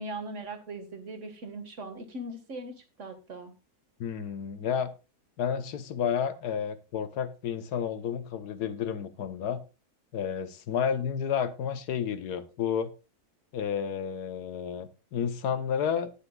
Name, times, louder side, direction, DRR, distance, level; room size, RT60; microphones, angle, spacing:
voice 1, 0.0-3.5, right 1 dB, 50° right, 1.9 m, -40 dB
voice 2, 4.0-4.9 5.4-9.6 10.1-12.9 13.5-16.1, left 7 dB, 75° left, 1.5 m, -31 dB
18.5 x 7.0 x 2.3 m
omnidirectional pair, 1.7 m